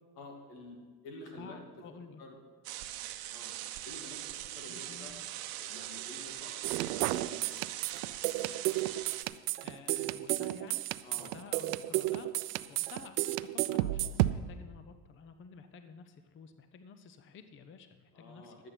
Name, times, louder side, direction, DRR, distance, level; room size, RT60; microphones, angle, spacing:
voice 1, 0.1-1.6 2.2-2.3 3.3-3.6 3.8-5.1 5.6-7.7 11.0-11.3 11.9-12.0 18.1-18.7, left 2 dB, 80° left, 2 dB, 2.6 m, -50 dB
voice 2, 1.4-2.2 4.6-5.2 9.6-10.9 11.2-18.7, left 5 dB, 25° left, 9 dB, 0.7 m, -52 dB
sound 1, 2.6-9.2, right 14 dB, 50° right, 0.8 m, -41 dB
sound 2, 6.6-14.3, right 16 dB, 80° right, 0.6 m, -32 dB
11.5 x 8.3 x 5.9 m, 1.5 s
supercardioid pair, 110°, 46 cm